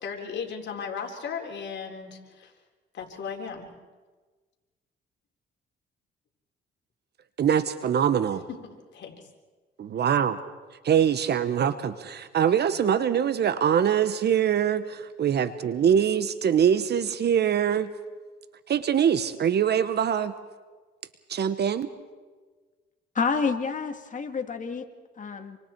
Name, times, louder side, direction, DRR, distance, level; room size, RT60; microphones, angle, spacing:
voice 1, 0.0-2.5 2.9-3.7 8.5-9.1, left 6 dB, 65° left, 2 dB, 3.9 m, -36 dB
voice 2, 7.4-8.4 9.8-10.4 10.8-14.8 15.2-17.9 18.7-20.3 21.3-21.9, right 8 dB, 55° right, 12 dB, 1.1 m, -23 dB
voice 3, 23.1-24.8 25.2-25.6, left 5 dB, 40° left, 5 dB, 2.1 m, -28 dB
28.0 x 25.0 x 4.6 m, 1.3 s
cardioid pair, 90°, 20 cm